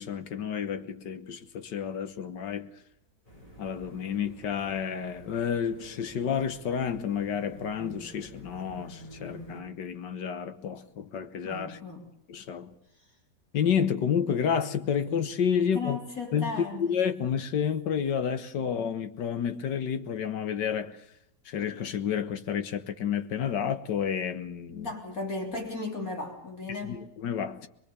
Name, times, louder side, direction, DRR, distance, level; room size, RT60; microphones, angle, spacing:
voice 1, 0.0-2.7 3.6-11.8 12.3-12.7 13.5-16.0 16.3-21.0 21.5-24.9 26.8-27.7, left 7 dB, 90° left, 1.9 m, -30 dB
sound 1, 3.2-9.6, equal, 20° left, 7.1 m, -49 dB
voice 2, 11.4-12.1 15.6-16.9 24.7-27.0, left 3 dB, 55° left, 4.0 m, -36 dB
24.0 x 22.5 x 6.9 m
omnidirectional pair, 1.8 m